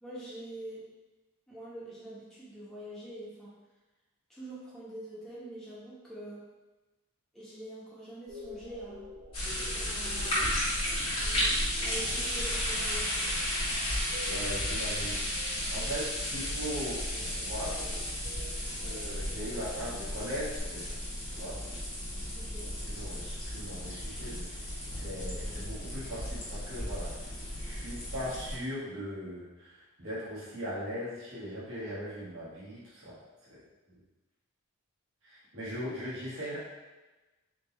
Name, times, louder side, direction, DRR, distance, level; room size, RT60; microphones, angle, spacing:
voice 1, 0.0-0.8 1.5-3.5 4.3-6.4 7.3-9.0 9.7-10.5 11.8-13.2 22.3-22.7, right 1 dB, ahead, -9 dB, 1.1 m, -44 dB
sound 1, 8.3-20.6, left 1 dB, 85° right, 1.3 m, -49 dB
sound 2, 9.3-28.5, left 1 dB, 25° left, 1.3 m, -34 dB
voice 2, 14.3-15.4 15.7-17.8 18.6-21.0 21.2-21.6 22.8-33.2 33.5-33.6 35.2-36.6, equal, 60° right, -8 dB, 1.5 m, -39 dB
3.7 x 2.8 x 4.0 m, 1.1 s
head